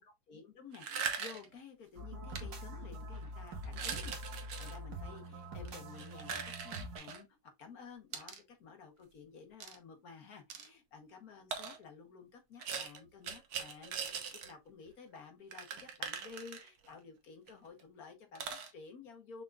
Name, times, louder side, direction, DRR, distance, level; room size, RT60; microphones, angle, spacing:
voice 1, 0.0-19.4, left 5 dB, 55° left, 1.4 m, -53 dB
sound 1, 0.7-1.5 2.3-2.4 2.9-3.2 3.6-4.8 5.6-7.2 8.1-8.4 9.6-9.8 10.5-10.7 11.5-11.8 12.6-14.5 14.9-15.0 15.2-15.3 15.5-16.9 17.5-17.6 17.8-17.9 18.4-18.7, right 6 dB, 60° right, 1.4 m, -41 dB
sound 2, 2.0-7.0, equal, 80° right, 2.1 m, -44 dB
6.4 x 3.6 x 2.3 m
omnidirectional pair, 1.9 m